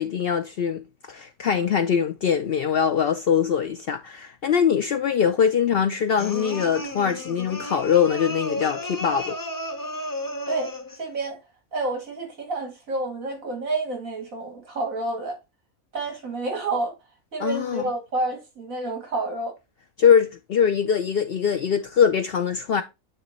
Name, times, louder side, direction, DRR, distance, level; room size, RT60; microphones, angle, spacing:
voice 1, 0.0-9.4 17.4-17.8 20.0-22.8, left 7 dB, 70° left, 0.5 m, -22 dB
sound 1, 6.2-11.1, left 1 dB, 20° left, 0.5 m, -33 dB
voice 2, 11.0-11.4 11.7-15.4 15.9-16.9 17.3-19.5, right 2 dB, 65° right, 2.7 m, -29 dB
9.1 x 3.1 x 4.1 m
omnidirectional pair, 1.5 m